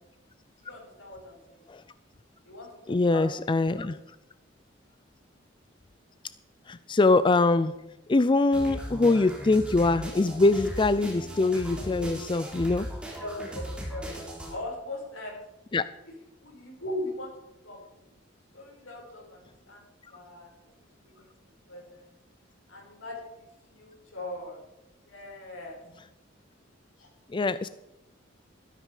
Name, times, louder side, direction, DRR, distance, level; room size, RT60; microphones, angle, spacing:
voice 1, 0.6-1.6 2.5-3.3 3.6-3.9 13.2-14.1 14.5-15.4 16.4-17.3 17.6-18.2 18.5-19.8 20.1-20.5 21.0-21.3 21.7-22.1 22.7-24.6 25.1-25.8 27.0-27.1, left 1 dB, 90° left, -1 dB, 5.7 m, -40 dB
voice 2, 2.9-4.0 6.7-7.7 8.1-12.9 15.7-15.8 27.3-27.7, left 3 dB, 25° left, 14 dB, 0.4 m, -23 dB
sound 1, 8.5-14.5, equal, 5° right, 3.5 m, -38 dB
13.5 x 12.5 x 5.0 m, 0.93 s
head